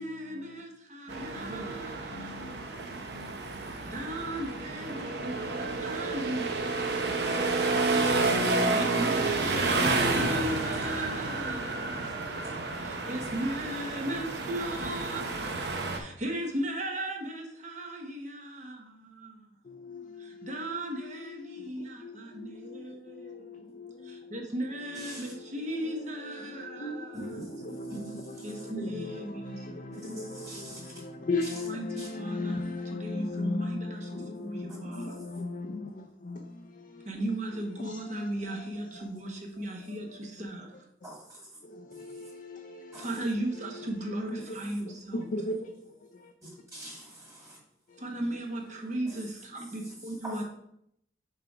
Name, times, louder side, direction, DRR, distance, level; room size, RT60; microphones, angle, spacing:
voice 1, 0.0-2.5 3.8-7.1 8.5-12.0 12.8-15.3 15.9-19.5 20.2-23.6 24.0-27.3 28.4-30.2 31.7-35.2 37.0-40.7 43.0-45.4 48.0-50.4, right 1 dB, 40° right, 1.0 m, -37 dB
sound 1, 1.1-16.0, right 3 dB, 60° right, 0.8 m, -30 dB
voice 2, 1.3-1.8 2.1-2.7 3.1-3.4 19.7-24.5 25.1-25.5 25.8-37.1 37.8-39.1 41.0-41.1 41.6-43.3 43.6-43.9 44.3-44.6 44.9-46.3 47.9-48.0, left 2 dB, 45° left, 0.5 m, -38 dB
voice 3, 27.1-27.4 28.4-28.5 29.9-30.9 32.0-32.1 34.9-35.0 41.0-41.4 42.9-43.1 46.7-47.6 49.6-49.7 50.2-50.4, right 1 dB, 15° right, 2.0 m, -44 dB
6.6 x 3.6 x 4.9 m
head